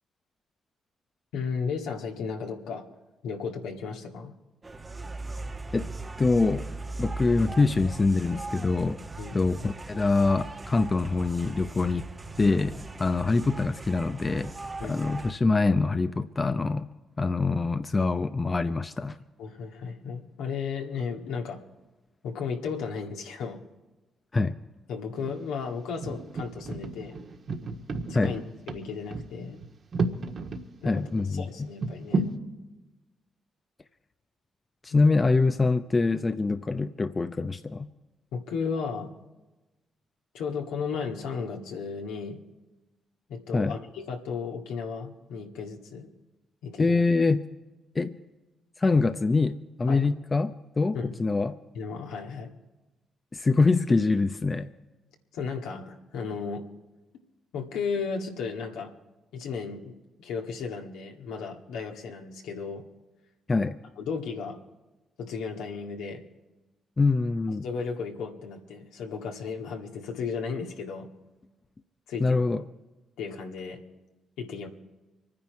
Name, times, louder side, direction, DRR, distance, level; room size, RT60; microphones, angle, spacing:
voice 1, 1.3-2.8 3.2-4.3 9.2-9.4 14.8-15.0 19.4-21.6 22.2-23.6 24.9-27.2 28.1-29.6 30.8-32.2 38.3-39.1 40.3-42.4 43.3-46.1 46.6-47.0 49.9-50.1 50.9-51.1 51.7-52.5 55.3-56.6 57.5-58.9 59.3-62.8 64.0-64.6 65.2-66.2 67.6-71.1 72.1-72.4 73.2-73.8 74.4-74.7, left 5 dB, 80° left, 1 dB, 1.8 m, -34 dB
sound 1, 4.6-15.3, right 3 dB, 30° right, 1.2 m, -39 dB
voice 2, 6.2-6.7 7.0-9.0 9.3-12.1 12.4-14.5 14.8-16.9 17.2-19.2 24.3-24.6 28.1-28.4 30.8-31.7 34.8-37.9 43.5-43.8 46.8-47.5 47.9-48.2 48.8-51.6 53.3-54.7 63.5-63.8 67.0-67.7 72.2-72.6, left 3 dB, 35° left, 9 dB, 0.7 m, -24 dB
sound 2, 25.1-25.5 26.0-30.6 31.0-31.1 31.8-32.4, right 3 dB, 60° right, 1.6 m, -32 dB
25.5 x 10.0 x 4.7 m, 1.1 s
hypercardioid pair, 45°, 0 cm